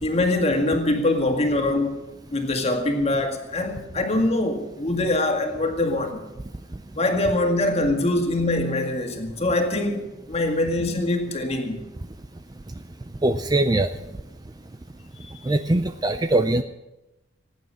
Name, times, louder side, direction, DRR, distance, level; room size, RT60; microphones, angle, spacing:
voice 1, 0.0-6.2 7.0-11.9 15.2-15.3, left 2 dB, 30° left, 2.0 m, -24 dB
voice 2, 13.2-13.9 15.5-16.6, right 2 dB, 20° right, 0.4 m, -21 dB
18.0 x 9.2 x 8.4 m
head